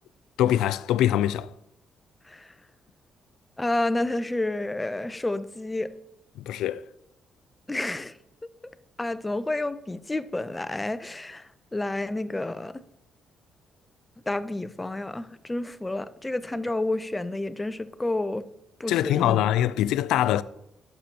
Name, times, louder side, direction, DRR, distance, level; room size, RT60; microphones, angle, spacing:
voice 1, 0.4-1.5 6.4-6.8 18.9-20.4, left 12 dB, 90° left, 0.3 m, -23 dB
voice 2, 3.6-5.9 7.7-8.1 9.0-12.8 14.3-18.5 18.8-19.4, left 2 dB, 15° left, 0.5 m, -30 dB
11.5 x 6.8 x 2.9 m
cardioid pair, 90°, 0 cm